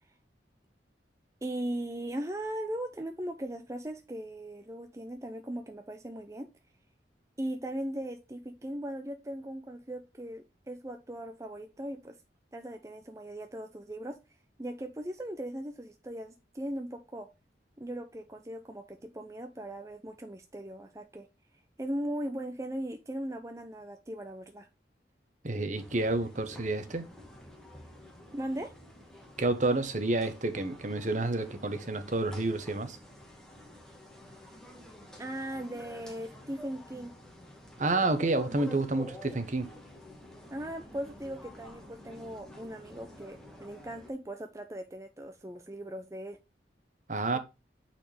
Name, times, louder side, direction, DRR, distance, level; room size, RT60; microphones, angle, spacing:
voice 1, 1.4-6.5 7.4-12.2 12.5-14.2 14.6-17.3 17.8-21.3 21.8-24.7 28.3-28.7 35.2-37.1 40.5-46.4 47.3-47.4, right 1 dB, 15° right, 0.6 m, -38 dB
voice 2, 25.4-27.1 29.4-33.0 37.8-39.7 47.1-47.4, right 2 dB, 45° right, 1.1 m, -29 dB
sound 1, 25.7-44.1, left 1 dB, 5° left, 1.6 m, -49 dB
8.9 x 4.4 x 3.3 m
head